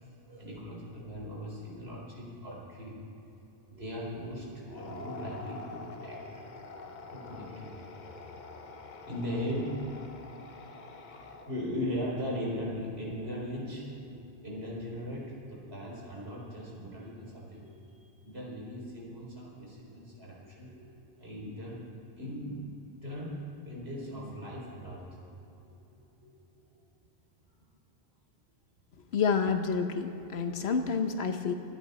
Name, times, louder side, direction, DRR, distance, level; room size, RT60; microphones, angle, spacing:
voice 1, 0.1-3.0 3.7-9.9 11.1-21.8 22.1-22.7 23.0-23.4 23.6-26.3 26.7-26.8, equal, 80° right, -4 dB, 4.4 m, -39 dB
sound 1, 4.6-11.8, left 3 dB, 50° left, 1.0 m, -46 dB
voice 2, 29.1-31.5, left 5 dB, 80° left, 7 dB, 1.2 m, -29 dB
25.0 x 11.0 x 4.2 m, 2.9 s
omnidirectional pair, 1.1 m